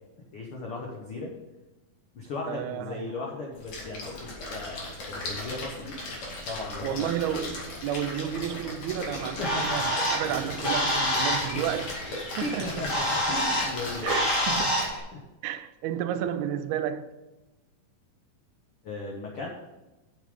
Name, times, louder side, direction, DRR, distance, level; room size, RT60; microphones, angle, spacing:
voice 1, 0.3-1.3 2.1-5.9 6.5-7.1 9.4-10.0 10.2-10.5 11.0-11.2 12.1-12.2 12.4-14.2 15.1-15.2 18.8-19.5, left 3 dB, 85° left, 1.2 m, -37 dB
voice 2, 2.5-3.0 6.8-11.9 12.4-12.9 14.0-14.9 15.4-17.1, right 10 dB, 85° right, 2.5 m, -31 dB
Splash splatter, 3.5-14.9, left 2 dB, 50° left, 3.1 m, -37 dB
Bird, 9.1-15.0, equal, 35° left, 2.1 m, -28 dB
8.3 x 7.2 x 5.3 m
omnidirectional pair, 4.4 m